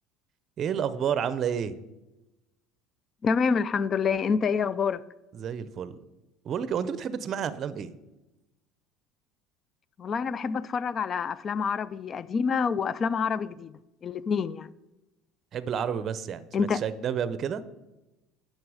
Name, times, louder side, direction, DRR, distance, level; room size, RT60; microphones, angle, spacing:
voice 1, 0.6-1.8 5.3-6.0 6.4-7.9 15.5-17.6, right 8 dB, 45° right, 0.6 m, -30 dB
voice 2, 3.2-5.0 10.0-13.7 14.0-14.7 16.5-16.8, left 6 dB, 35° left, 0.4 m, -27 dB
9.3 x 6.6 x 4.8 m
supercardioid pair, 115°, 0 cm